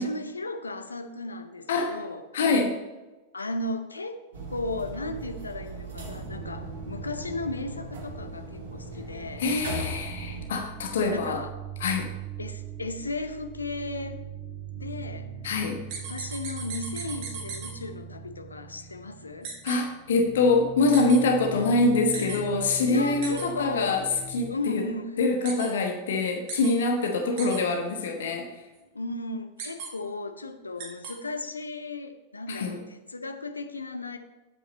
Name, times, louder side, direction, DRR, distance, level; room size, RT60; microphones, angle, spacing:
voice 1, 0.0-2.2 3.3-4.2 4.5-9.4 11.1-11.5 12.4-14.2 14.8-15.3 15.9-19.5 21.5-21.7 22.1-22.5 22.8-24.0 24.5-25.2 28.9-34.2, left 2 dB, 80° left, 8 dB, 0.7 m, -35 dB
voice 2, 2.3-2.8 9.4-11.4 11.8-12.1 15.4-15.8 19.6-24.0 24.3-24.8 25.2-28.5 32.5-32.8, left 3 dB, 60° left, 3 dB, 1.1 m, -25 dB
sound 1, 4.3-10.5, right 2 dB, 60° right, 1.9 m, -38 dB
sound 2, 6.2-9.1 9.4-24.5, right 3 dB, 30° right, 2.1 m, -41 dB
sound 3, 15.9-17.7 19.4-19.8 20.9-21.2 22.1-22.4 23.2-23.5 25.4-25.7 26.5-26.7 27.4-27.6 29.6-29.9 30.8-31.1, right 6 dB, 45° right, 1.9 m, -36 dB
8.0 x 7.7 x 4.1 m, 1.1 s
figure-of-eight pair, 90°, 0 cm